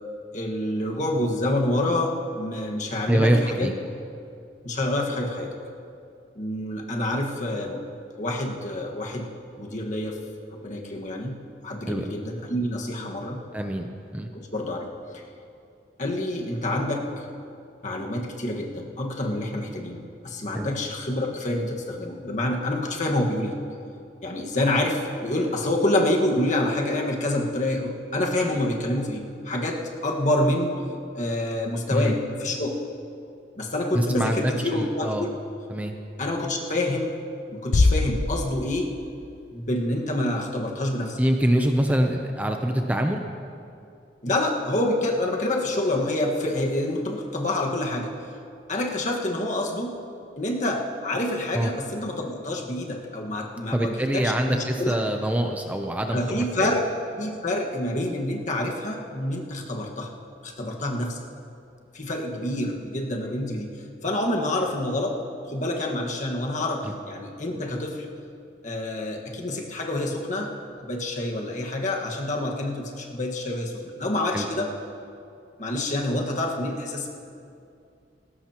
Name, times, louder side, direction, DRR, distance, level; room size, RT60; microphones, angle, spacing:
voice 1, 0.3-3.7 4.6-5.5 6.3-7.8 8.2-9.3 9.6-10.2 10.5-11.4 11.6-13.4 14.5-14.8 15.1-15.2 16.0-17.2 17.8-23.6 24.2-30.8 31.1-32.8 33.6-35.3 36.2-37.1 37.5-38.9 39.5-41.2 44.2-48.1 48.7-50.0 50.4-55.0 56.1-56.8 57.2-60.1 60.4-61.2 61.9-65.2 65.5-68.1 68.6-70.5 70.8-74.7 75.6-77.1, left 1 dB, 45° left, 0 dB, 1.6 m, -27 dB
voice 2, 3.1-3.7 11.9-12.0 13.5-13.9 14.1-14.3 20.5-20.7 31.9-32.1 33.9-35.3 35.7-35.9 41.2-43.2 51.5-51.7 53.7-56.7 66.8-66.9 74.3-74.5, right 1 dB, 10° right, 4 dB, 0.6 m, -24 dB
sound 1, 37.7-39.2, left 2 dB, 60° left, 0.7 m, -23 dB
19.0 x 17.0 x 3.0 m, 2.5 s
head